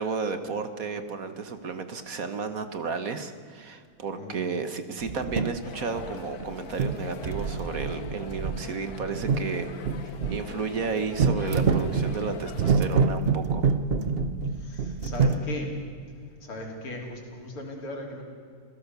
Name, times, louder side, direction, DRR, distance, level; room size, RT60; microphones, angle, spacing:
voice 1, 0.0-9.7 10.3-13.6, right 5 dB, 45° right, 9 dB, 1.4 m, -32 dB
sound 1, 5.0-5.6 6.0-6.5 6.7-10.4 11.1-15.4, right 5 dB, 65° right, 0.5 m, -26 dB
sound 2, 5.6-12.7, left 7 dB, 55° left, 1.3 m, -43 dB
voice 2, 14.4-15.7 16.4-18.2, left 2 dB, 80° left, 0 dB, 4.4 m, -38 dB
28.5 x 16.5 x 6.9 m, 2.2 s
omnidirectional pair, 2.4 m